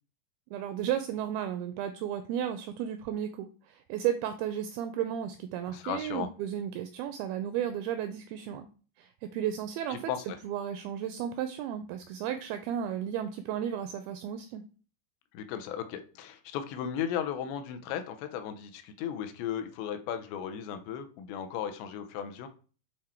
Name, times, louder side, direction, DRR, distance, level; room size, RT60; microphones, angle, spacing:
voice 1, 0.5-8.7 9.0-10.0 10.4-14.6, right 10 dB, 85° right, 9 dB, 2.1 m, -34 dB
voice 2, 5.7-6.3 9.9-10.4 15.3-22.5, left 9 dB, 90° left, 8 dB, 3.0 m, -36 dB
8.2 x 3.7 x 4.3 m, 0.38 s
omnidirectional pair, 4.8 m